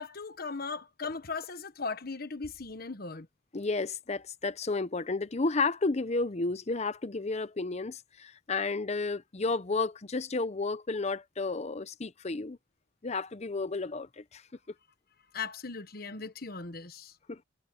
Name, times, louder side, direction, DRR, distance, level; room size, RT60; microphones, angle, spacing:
voice 1, 0.0-3.3 15.3-17.2, left 4 dB, 50° left, 1.3 m, -38 dB
voice 2, 3.5-12.6 13.0-14.4 17.3-17.4, left 3 dB, 35° left, 0.7 m, -32 dB
head